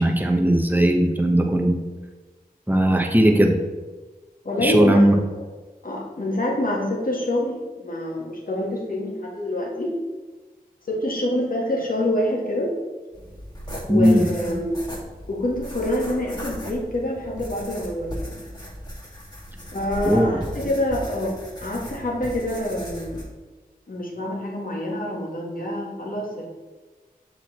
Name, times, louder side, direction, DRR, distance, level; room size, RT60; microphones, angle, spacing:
voice 1, 0.0-1.7 2.7-3.5 4.6-5.1 13.9-14.2 20.0-20.3, right 1 dB, 10° right, 2 dB, 1.0 m, -18 dB
voice 2, 4.4-5.4 5.8-9.9 10.9-12.7 13.9-14.8 15.3-18.4 19.7-23.2 23.9-26.5, left 1 dB, 65° left, -2 dB, 1.8 m, -26 dB
sound 1, 13.1-23.2, equal, 25° left, 2.0 m, -37 dB
6.8 x 4.6 x 4.2 m, 1.3 s
cardioid pair, 40°, 15 cm